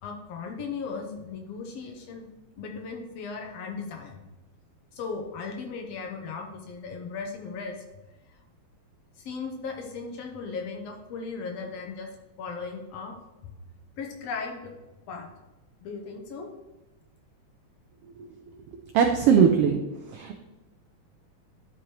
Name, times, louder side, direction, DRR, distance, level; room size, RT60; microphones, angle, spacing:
voice 1, 0.0-2.3 2.6-4.2 4.9-7.8 8.3-8.4 9.2-12.1 12.4-13.2 13.4-13.5 14.0-14.7 15.1-15.3 15.8-16.5, left 4 dB, 70° left, 2 dB, 1.8 m, -37 dB
voice 2, 18.9-19.8 20.1-20.4, right 7 dB, 90° right, 4 dB, 1.3 m, -20 dB
11.5 x 4.8 x 3.0 m, 1.1 s
omnidirectional pair, 3.4 m